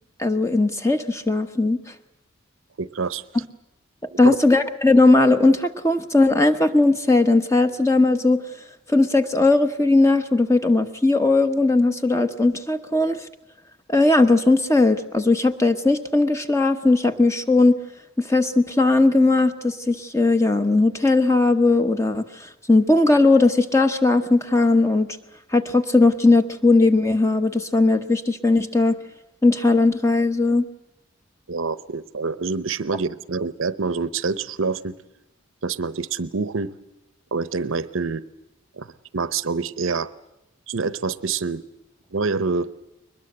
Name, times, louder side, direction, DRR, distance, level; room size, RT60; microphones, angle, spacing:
voice 1, 0.2-1.8 4.2-8.4 8.9-13.2 13.9-17.8 18.2-25.2 25.5-29.0 29.4-30.7, left 2 dB, 15° left, 9 dB, 1.0 m, -18 dB
voice 2, 2.8-3.2 4.1-4.4 31.5-34.9 35.6-36.7 37.3-38.2 38.8-40.1 40.7-41.6 42.1-42.7, right 4 dB, 80° right, 16 dB, 0.8 m, -26 dB
22.5 x 21.0 x 8.0 m, 0.95 s
head